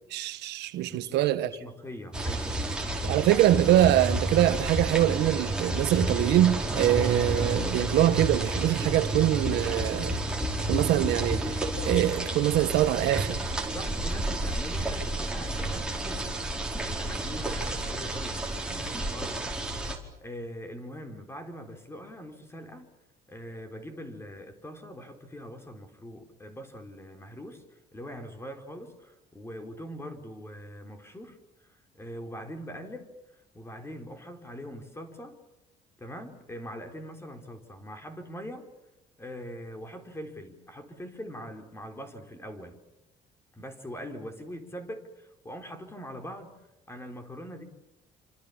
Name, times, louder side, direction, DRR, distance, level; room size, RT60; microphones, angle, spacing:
voice 1, 0.1-1.5 3.0-10.2 10.7-13.4, right 13 dB, 80° right, 1.4 m, -24 dB
voice 2, 0.9-2.9 13.6-19.5 20.2-22.9 23.3-33.1 33.5-35.4 36.0-38.7 39.2-42.8 43.6-46.5 46.9-47.6, equal, 15° left, 4.6 m, -42 dB
sound 1, 2.1-20.0, right 2 dB, 5° right, 4.6 m, -30 dB
27.5 x 27.0 x 7.2 m
cardioid pair, 110°, 17 cm